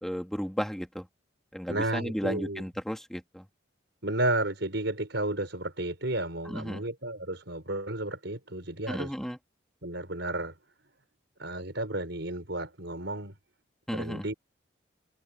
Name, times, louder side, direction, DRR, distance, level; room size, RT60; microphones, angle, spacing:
voice 1, 0.0-1.1 1.5-3.5 6.4-6.8 8.9-9.4 13.9-14.3, equal, ahead, 2.7 m, -34 dB
voice 2, 1.7-2.6 4.0-9.1 9.8-10.5 11.4-13.3 13.9-14.3, right 1 dB, 65° right, 5.6 m, -32 dB
head